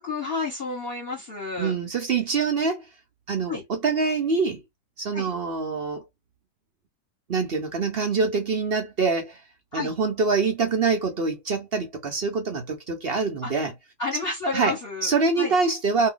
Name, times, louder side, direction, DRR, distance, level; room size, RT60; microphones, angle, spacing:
voice 1, 0.0-1.8 3.5-3.6 5.1-5.3 9.7-9.9 13.4-13.5 14.0-15.1 15.4-15.6, left 3 dB, 40° left, 1.2 m, -30 dB
voice 2, 1.6-2.9 3.3-4.6 5.0-6.0 7.3-9.4 9.7-13.7 14.5-16.1, right 4 dB, 50° right, 0.7 m, -25 dB
2.8 x 2.2 x 3.7 m
omnidirectional pair, 1.8 m